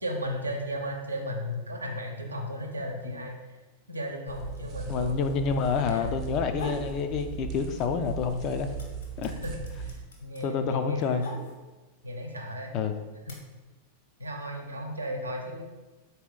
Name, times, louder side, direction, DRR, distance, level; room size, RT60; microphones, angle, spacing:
voice 1, 0.0-3.3 3.9-5.5 5.9-6.1 9.4-9.6 9.8-11.4 12.0-12.8 13.3-13.4 14.2-15.6, equal, 80° right, 1 dB, 0.7 m, -35 dB
sound 1, 4.3-10.0, right 6 dB, 35° right, 0.6 m, -38 dB
voice 2, 4.9-8.7 9.2-9.3 10.4-11.3 12.7-13.0, left 5 dB, 40° left, 8 dB, 0.4 m, -28 dB
sound 2, 6.5-6.9 7.3-8.0 8.3-11.9 12.7-13.3, left 1 dB, 60° left, 0.9 m, -42 dB
4.1 x 2.8 x 3.8 m, 1.2 s
figure-of-eight pair, 90°, 0 cm